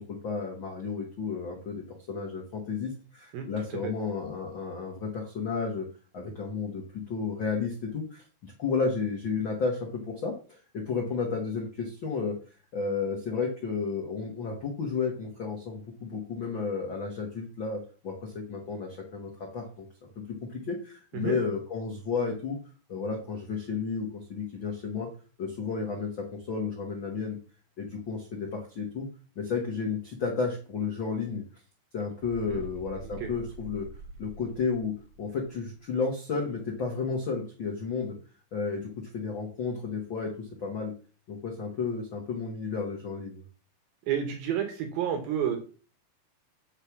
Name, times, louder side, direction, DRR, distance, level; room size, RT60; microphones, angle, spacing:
voice 1, 0.0-5.9 6.1-12.3 12.7-19.8 20.1-22.6 22.9-25.1 25.4-27.4 27.8-29.1 29.3-31.4 31.9-33.9 34.2-38.2 38.5-40.9 41.3-43.4, left 5 dB, 70° left, 1 dB, 1.1 m, -32 dB
voice 2, 3.3-3.9 21.1-21.4 32.5-32.6 33.2-33.3 44.1-45.6, right 9 dB, 75° right, 6 dB, 2.9 m, -30 dB
sound 1, 32.2-35.8, right 3 dB, 55° right, 1.5 m, -45 dB
8.7 x 4.9 x 5.9 m, 0.38 s
omnidirectional pair, 4.4 m